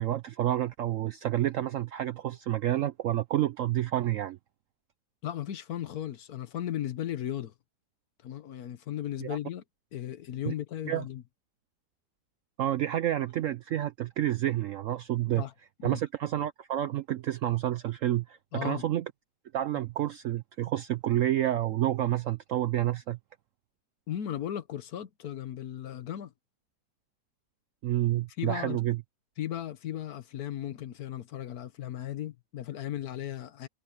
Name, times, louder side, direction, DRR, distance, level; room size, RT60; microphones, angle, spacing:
voice 1, 0.0-4.4 9.2-9.4 10.4-10.5 10.8-11.0 12.6-15.4 15.8-19.0 19.5-23.2 27.8-29.0, right 13 dB, 70° right, 0.7 m, -29 dB
voice 2, 5.2-7.5 8.2-9.6 9.9-11.2 15.4-15.5 15.8-16.0 18.5-18.9 24.1-26.3 28.4-28.8 29.4-33.7, left 11 dB, 65° left, 1.3 m, -36 dB
omnidirectional pair, 1.8 m